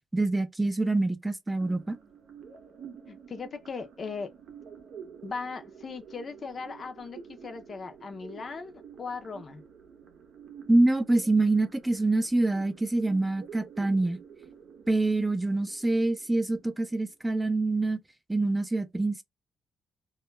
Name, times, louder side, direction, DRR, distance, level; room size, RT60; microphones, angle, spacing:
voice 1, 0.1-2.0 10.7-14.2 14.9-18.0 18.3-19.2, right 2 dB, 10° right, 0.4 m, -25 dB
sound 1, 1.5-17.4, right 7 dB, 70° right, 0.6 m, -49 dB
voice 2, 3.1-4.3 5.2-8.7 9.0-9.6, left 4 dB, 45° left, 0.5 m, -38 dB
2.3 x 2.1 x 3.1 m
cardioid pair, 90°, 0 cm